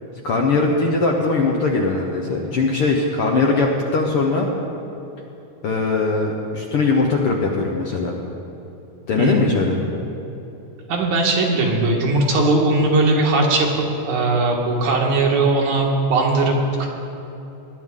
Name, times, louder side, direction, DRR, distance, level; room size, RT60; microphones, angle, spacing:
voice 1, 0.2-4.5 5.6-8.2 9.1-9.8, left 3 dB, 65° left, 0 dB, 1.5 m, -20 dB
voice 2, 10.9-16.9, right 2 dB, 80° right, 0 dB, 3.0 m, -19 dB
20.0 x 10.0 x 3.7 m, 2.9 s
omnidirectional pair, 3.5 m